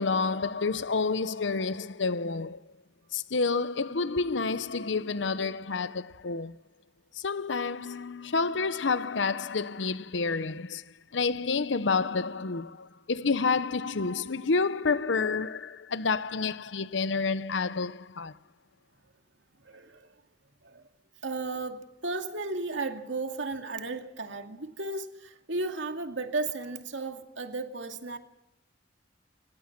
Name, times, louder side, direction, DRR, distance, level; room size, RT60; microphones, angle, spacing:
voice 1, 0.0-2.6 3.1-6.6 7.1-18.3, left 4 dB, 75° left, 0.8 m, -29 dB
voice 2, 19.6-20.1 20.6-20.8 21.2-28.2, right 3 dB, 80° right, 2.3 m, -34 dB
29.5 x 17.5 x 6.0 m
head